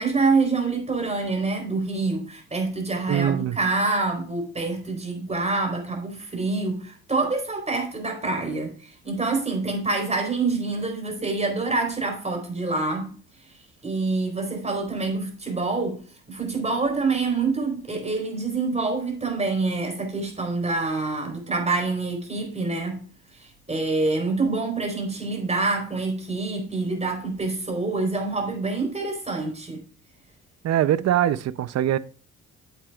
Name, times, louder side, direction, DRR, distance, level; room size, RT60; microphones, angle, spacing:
voice 1, 0.0-13.1 13.8-16.0 16.3-23.0 23.4-29.8, right 3 dB, 20° right, 4.0 m, -26 dB
voice 2, 3.1-3.6 30.6-32.0, right 11 dB, 60° right, 0.7 m, -22 dB
9.0 x 8.1 x 2.4 m
cardioid pair, 90°, 30 cm